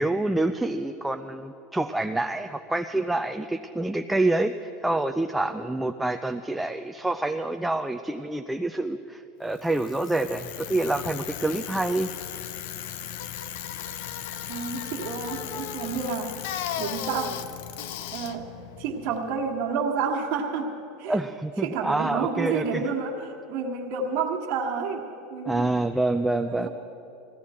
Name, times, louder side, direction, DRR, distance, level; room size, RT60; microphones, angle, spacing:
voice 1, 0.0-12.1 21.1-22.9 25.5-26.7, right 2 dB, 5° right, 6 dB, 0.4 m, -27 dB
Bicycle, 9.5-19.6, left 10 dB, 70° left, 0.6 m, -36 dB
voice 2, 14.5-16.4 16.8-17.4 18.1-18.5 18.8-21.2 21.6-25.7 26.3-26.7, right 5 dB, 55° right, -2 dB, 1.6 m, -30 dB
19.5 x 15.5 x 4.3 m, 2.8 s
supercardioid pair, 115°, 0 cm